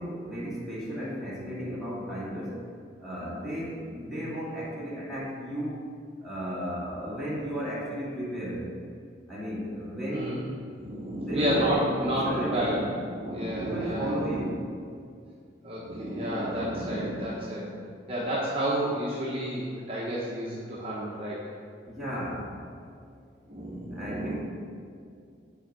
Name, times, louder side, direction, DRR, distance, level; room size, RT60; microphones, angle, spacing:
voice 1, 0.0-2.6 3.0-5.9 6.2-8.7 9.3-10.4 11.2-12.8 13.6-14.6 21.9-22.6 23.9-24.3, equal, ahead, -9 dB, 2.0 m, -34 dB
voice 2, 10.8-14.4 15.6-17.8 18.1-21.4 23.5-24.3, right 1 dB, 30° right, -6 dB, 0.9 m, -30 dB
7.8 x 4.5 x 6.0 m, 2.3 s
head